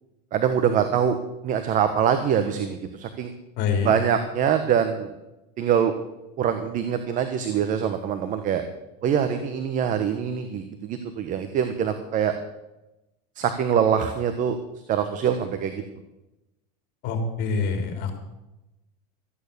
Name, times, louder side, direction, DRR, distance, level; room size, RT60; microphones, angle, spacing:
voice 1, 0.3-1.2 1.4-3.3 3.8-5.1 5.6-5.9 6.4-8.6 9.0-12.3 13.4-14.6 14.9-15.7, right 8 dB, 40° right, 8 dB, 1.3 m, -24 dB
voice 2, 3.6-3.9 17.0-18.2, left 5 dB, 50° left, 6 dB, 3.4 m, -25 dB
14.5 x 9.2 x 6.9 m, 0.96 s
supercardioid pair, 125°, 21 cm